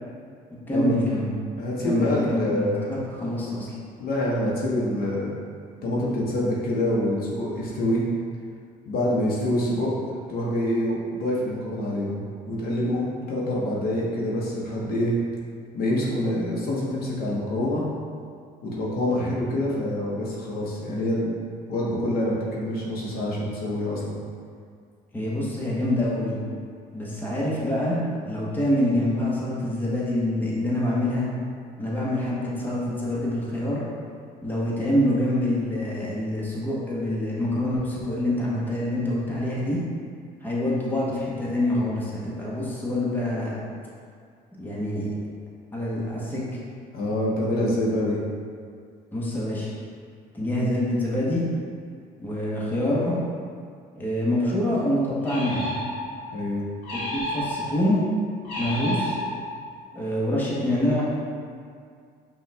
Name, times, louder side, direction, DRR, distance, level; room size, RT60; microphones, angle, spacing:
voice 1, 0.7-1.3 1.8-3.7 25.1-26.4 26.9-31.3 31.8-33.8 34.4-39.8 40.4-43.6 44.6-45.1 45.7-46.4 49.1-49.7 50.3-51.4 52.2-53.1 53.9-55.7 56.9-58.0 58.6-59.2 59.9-61.0, left 1 dB, 10° left, -6 dB, 1.0 m, -26 dB
voice 2, 1.6-3.0 4.0-5.3 5.8-8.0 8.9-15.1 15.7-17.8 18.6-21.4 21.7-24.2 46.9-48.2 56.3-56.6, left 1 dB, 65° left, -4 dB, 0.9 m, -26 dB
sound 1, 55.2-56.3 56.8-57.9 58.4-59.6, left 1 dB, 90° left, 1.3 m, -31 dB
5.4 x 2.4 x 3.4 m, 2.2 s
cardioid pair, 110°, 17 cm